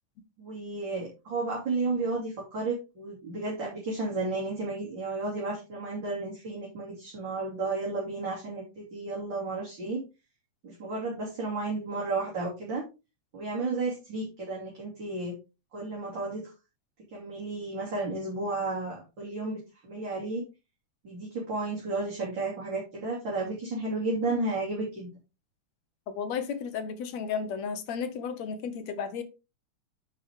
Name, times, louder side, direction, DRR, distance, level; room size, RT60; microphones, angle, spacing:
voice 1, 0.4-10.0 10.6-12.8 13.3-15.4 15.7-16.5 17.1-20.4 21.0-25.1, right 3 dB, 35° right, 3.5 m, -33 dB
voice 2, 26.1-29.2, left 6 dB, 65° left, 2.1 m, -33 dB
10.0 x 6.6 x 3.6 m
omnidirectional pair, 3.6 m